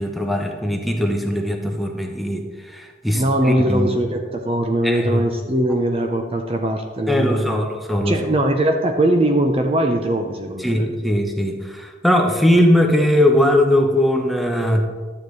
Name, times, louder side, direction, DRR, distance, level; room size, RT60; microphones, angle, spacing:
voice 1, 0.0-3.9 4.8-5.2 7.1-8.2 10.6-14.9, left 1 dB, ahead, 2 dB, 0.9 m, -19 dB
voice 2, 3.2-7.7 8.1-10.8, right 1 dB, 30° right, 4 dB, 0.7 m, -20 dB
12.0 x 8.7 x 3.2 m, 1.4 s
head